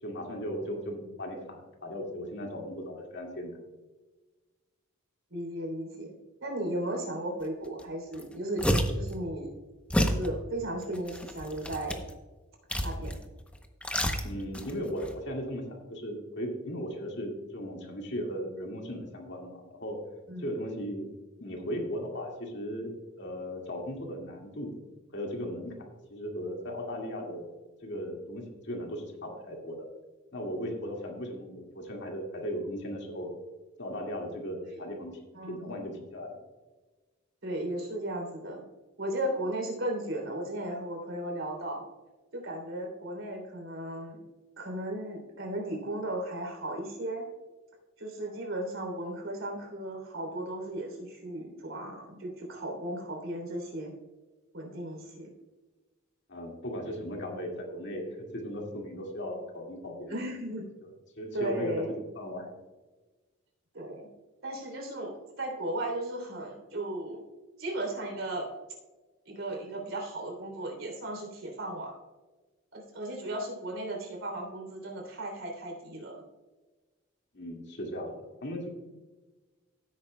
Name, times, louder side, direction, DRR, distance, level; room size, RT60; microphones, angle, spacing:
voice 1, 0.0-3.6 14.2-20.0 20.4-21.1 21.4-24.7 25.1-25.7 26.1-27.5 27.8-29.9 30.3-33.3 33.8-35.1 35.5-36.4 56.3-60.2 61.2-61.7 62.2-62.5 77.3-78.7, equal, 60° left, 1 dB, 2.0 m, -37 dB
voice 2, 5.3-6.1 6.4-8.6 8.9-9.5 10.0-12.0 12.8-13.2 20.3-20.5 34.7-34.8 35.3-35.7 37.4-38.6 39.0-41.8 42.3-44.2 44.6-47.3 48.0-53.9 54.5-55.3 60.1-60.6 61.3-61.9 63.7-64.1 64.4-67.3 67.6-68.5 69.2-72.0 72.7-76.2, right 1 dB, 70° right, 1 dB, 3.2 m, -35 dB
sound 1, 7.8-7.9 8.1-9.1 9.9-10.3 10.9-12.1 12.7-13.3 13.5-14.7 15.0-15.1, equal, 5° left, 0.7 m, -29 dB
16.0 x 8.6 x 2.2 m, 1.2 s
head